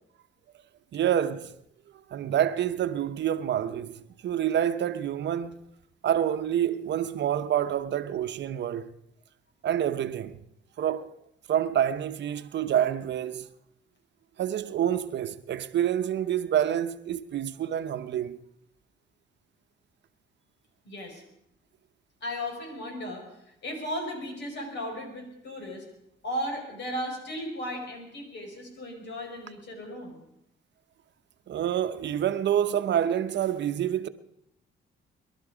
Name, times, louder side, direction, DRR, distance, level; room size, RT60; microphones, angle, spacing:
voice 1, 0.9-1.5 2.1-5.6 6.0-8.9 9.6-10.4 10.8-11.1 11.5-13.5 14.4-18.4 31.5-34.1, right 10 dB, 65° right, 0.8 m, -27 dB
voice 2, 20.8-21.2 22.2-25.9 26.2-30.2, equal, 65° left, 5.3 m, -36 dB
22.5 x 12.0 x 5.0 m
cardioid pair, 90°, 20 cm